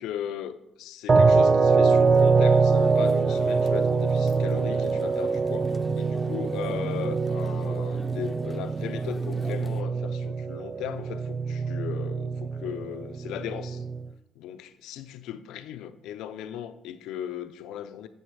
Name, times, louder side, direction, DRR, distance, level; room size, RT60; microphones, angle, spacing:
voice 1, 0.0-13.9 14.4-18.1, left 10 dB, 85° left, 0.5 m, -37 dB
sound 1, 1.1-14.1, right 4 dB, 35° right, 0.5 m, -24 dB
sound 2, 1.9-9.8, left 1 dB, 10° left, 0.7 m, -42 dB
7.7 x 6.5 x 6.7 m
cardioid pair, 80°, 0 cm